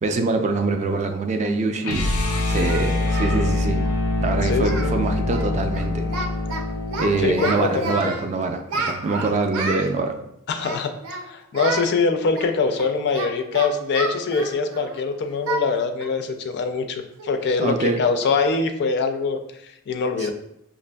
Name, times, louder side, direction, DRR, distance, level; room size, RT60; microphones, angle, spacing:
voice 1, 0.0-3.8 4.2-6.1 7.0-10.1 17.6-18.0 20.2-20.3, right 3 dB, 30° right, 5 dB, 0.3 m, -24 dB
Singing, 1.4-1.5 2.2-3.4 3.7-3.9 4.2-4.3 4.6-5.0 5.2-5.5 5.7-6.6 6.9-8.2 8.7-9.9 10.6-11.2 11.5-11.9 12.3-15.0 15.5-15.7 16.0-16.2 16.6-16.7 17.2-17.5, right 3 dB, 80° right, 0.6 m, -30 dB
sound 1, 1.8-7.9, left 2 dB, 90° left, 0.6 m, -24 dB
voice 2, 4.4-4.9 7.2-8.1 10.5-20.3, left 4 dB, 50° left, 7 dB, 0.3 m, -24 dB
5.6 x 2.5 x 2.2 m, 0.80 s
head